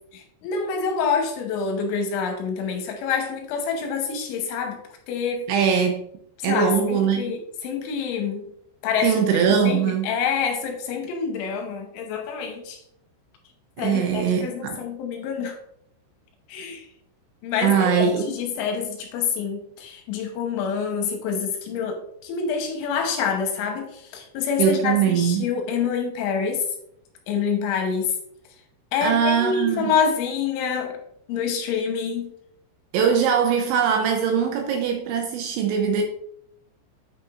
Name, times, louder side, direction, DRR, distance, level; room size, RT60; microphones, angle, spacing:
voice 1, 0.4-4.8 5.1-5.4 6.4-8.5 8.8-12.8 13.8-15.6 16.5-16.8 17.4-26.6 27.3-28.1 28.9-31.0 31.3-32.3, left 6 dB, 75° left, 3 dB, 3.2 m, -27 dB
voice 2, 5.5-6.0 6.4-7.3 9.0-10.1 13.8-14.8 17.6-18.3 24.6-25.5 29.0-29.9 32.9-36.0, right 7 dB, 80° right, 4 dB, 2.7 m, -21 dB
8.8 x 5.9 x 2.5 m, 0.70 s
omnidirectional pair, 5.8 m